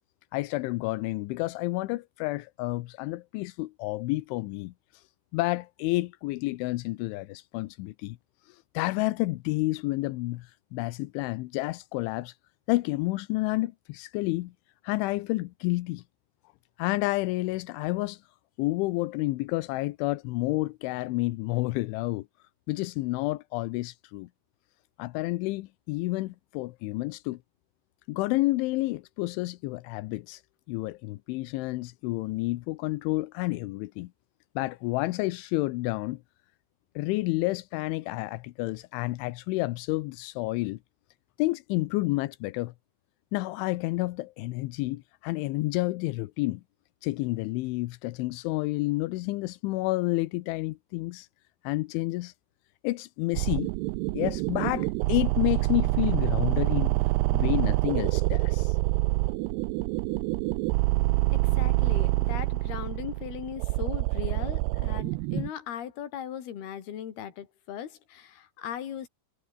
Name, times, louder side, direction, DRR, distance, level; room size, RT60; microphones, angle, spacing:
voice 1, 0.3-4.7 5.3-8.2 8.5-12.3 12.7-14.5 14.8-16.0 16.8-18.2 18.6-22.3 22.7-24.3 25.0-27.4 28.1-30.4 30.7-34.1 34.6-36.2 37.0-40.8 41.4-42.7 43.3-46.6 47.0-51.3 51.6-52.3 52.8-53.7 54.1-56.9 57.3-58.8, left 20 dB, 90° left, 3.2 m, -30 dB
sound 1, 53.3-65.5, right 23 dB, 85° right, 2.4 m, -26 dB
voice 2, 61.3-69.1, left 10 dB, 60° left, 4.4 m, -38 dB
omnidirectional pair, 5.3 m